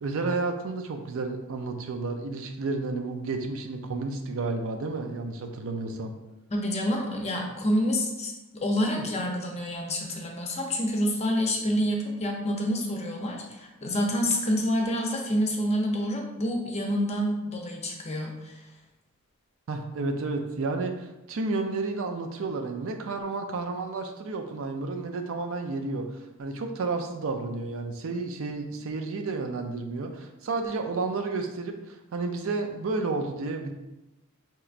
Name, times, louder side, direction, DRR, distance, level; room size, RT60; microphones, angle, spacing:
voice 1, 0.0-6.1 8.9-9.0 19.7-33.7, right 3 dB, 65° right, 5 dB, 0.4 m, -31 dB
voice 2, 6.5-8.3 8.6-18.6, equal, 30° left, 1 dB, 0.6 m, -28 dB
4.5 x 2.9 x 2.4 m, 0.99 s
head